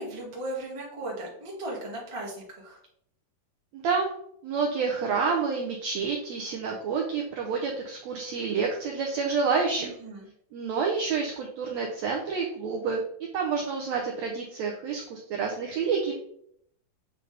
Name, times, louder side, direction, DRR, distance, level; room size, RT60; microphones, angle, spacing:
voice 1, 0.0-2.8 9.8-10.3, right 1 dB, 15° right, -5 dB, 1.0 m, -37 dB
voice 2, 3.7-4.1 4.4-9.9 10.5-13.0 13.3-16.1, right 5 dB, 75° right, 0 dB, 1.6 m, -28 dB
8.0 x 3.9 x 3.3 m, 0.71 s
omnidirectional pair, 3.9 m